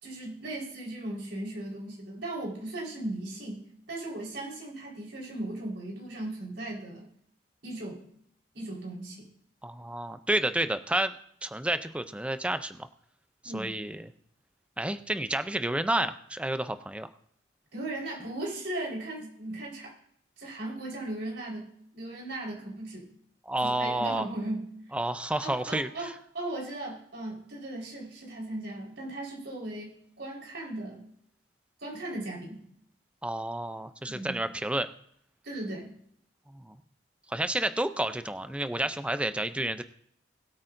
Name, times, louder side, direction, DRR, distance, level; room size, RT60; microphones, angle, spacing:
voice 1, 0.0-3.6 3.9-7.1 7.6-8.0 8.5-9.3 13.4-13.8 17.7-19.9 20.4-21.7 21.9-23.1 23.6-24.7 25.4-31.0 31.8-32.6 34.1-34.3 35.4-35.9, right 1 dB, 70° right, -3 dB, 4.4 m, -37 dB
voice 2, 9.6-11.1 11.4-12.9 13.5-14.1 14.8-17.1 23.5-24.3 24.9-26.1 33.2-34.9 36.5-36.8 37.3-39.8, right 1 dB, 5° right, 11 dB, 0.5 m, -30 dB
20.5 x 8.7 x 2.6 m, 0.67 s
head